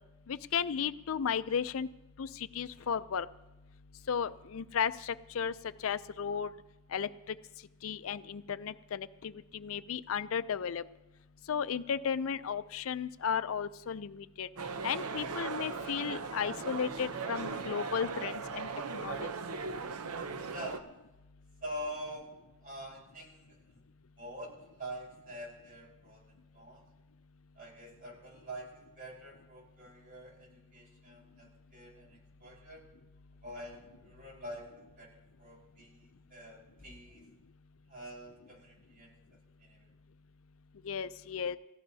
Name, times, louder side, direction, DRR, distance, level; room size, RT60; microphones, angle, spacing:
voice 1, 0.3-1.9 2.2-3.3 4.1-5.5 5.8-6.5 6.9-7.4 7.8-10.8 11.5-14.5 14.8-19.3 40.8-41.6, left 7 dB, 65° left, 13 dB, 0.4 m, -34 dB
sound 1, 14.6-20.8, right 4 dB, 85° right, 0.7 m, -38 dB
voice 2, 20.5-20.9 21.6-22.3 22.6-23.8 24.2-26.9 27.6-32.8 33.4-34.7 35.0-37.3 37.9-39.9, equal, 40° right, -1 dB, 4.4 m, -46 dB
29.5 x 15.0 x 2.7 m, 1.0 s
head